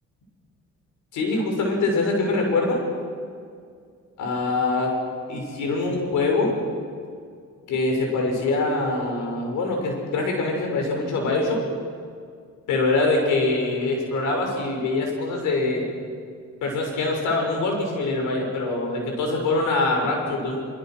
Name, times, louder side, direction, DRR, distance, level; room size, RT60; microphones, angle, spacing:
voice 1, 1.1-2.8 4.2-4.9 5.3-6.6 7.7-11.6 12.7-15.8 16.6-20.6, left 3 dB, 85° left, 1 dB, 6.5 m, -24 dB
25.0 x 24.5 x 6.3 m, 2.2 s
cardioid pair, 90°, 30 cm